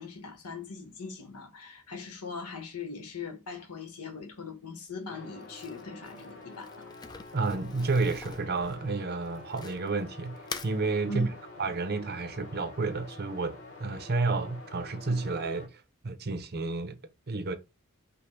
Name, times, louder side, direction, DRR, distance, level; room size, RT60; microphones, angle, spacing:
voice 1, 0.0-6.9 11.1-11.3, left 4 dB, 90° left, 1.2 m, -40 dB
sound 1, 5.1-15.7, left 2 dB, 60° left, 2.3 m, -48 dB
Crumpling crinkling, 5.4-10.0 10.4-10.7, left 5 dB, 20° left, 0.4 m, -44 dB
voice 2, 7.3-10.4 10.6-11.3 11.6-17.0 17.3-17.5, right 3 dB, 45° right, 0.6 m, -31 dB
5.2 x 2.2 x 4.3 m
head